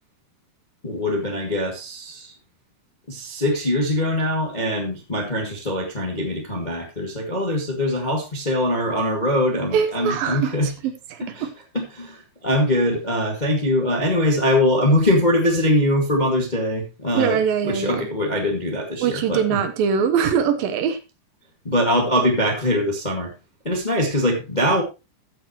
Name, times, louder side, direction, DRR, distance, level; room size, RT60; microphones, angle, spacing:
voice 1, 0.8-2.3 3.1-10.7 11.2-11.5 11.7-19.6 21.6-23.3 23.6-24.8, left 1 dB, 20° left, 1 dB, 1.0 m, -22 dB
voice 2, 9.7-11.5 17.1-18.0 19.0-21.0, right 7 dB, 70° right, 8 dB, 2.6 m, -22 dB
15.0 x 8.1 x 3.0 m, 0.28 s
omnidirectional pair, 4.5 m